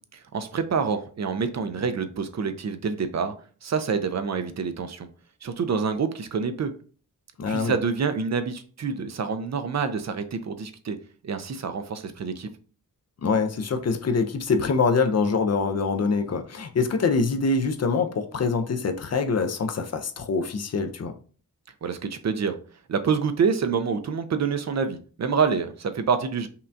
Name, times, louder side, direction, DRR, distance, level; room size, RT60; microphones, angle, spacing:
voice 1, 0.3-3.3 3.6-5.1 5.4-6.7 7.5-11.0 11.2-12.5 21.8-22.6 22.9-26.5, right 5 dB, 50° right, 0.4 m, -27 dB
voice 2, 7.4-7.8 13.2-21.1, left 4 dB, 45° left, 0.4 m, -24 dB
5.5 x 2.2 x 2.5 m
wide cardioid pair, 140°, 36 cm